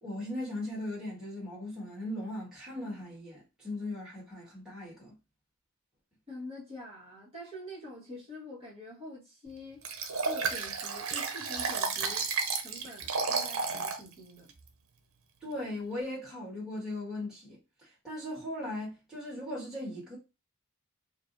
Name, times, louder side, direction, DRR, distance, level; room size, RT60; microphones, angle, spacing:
voice 1, 0.0-5.2 15.4-20.2, left 1 dB, 5° right, 1.7 m, -38 dB
voice 2, 6.3-9.8 10.2-12.3 12.6-14.5, left 1 dB, 30° right, 1.6 m, -46 dB
Liquid, 9.8-14.0 14.5-14.6, right 4 dB, 70° right, 0.8 m, -32 dB
4.8 x 2.4 x 2.6 m
head